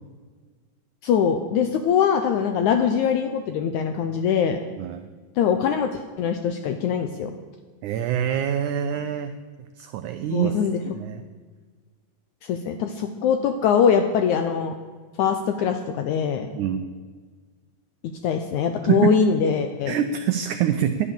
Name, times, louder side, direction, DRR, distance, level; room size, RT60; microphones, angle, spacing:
voice 1, 1.0-4.6 5.4-7.3 10.3-10.8 12.4-14.7 15.2-16.5 18.2-20.0, left 7 dB, 80° left, 7 dB, 1.7 m, -22 dB
voice 2, 7.8-9.3 9.8-10.6 10.8-11.2 16.5-16.8 18.9-19.2 19.9-21.1, right 10 dB, 90° right, 8 dB, 1.7 m, -25 dB
11.0 x 10.0 x 6.9 m, 1.4 s
omnidirectional pair, 4.2 m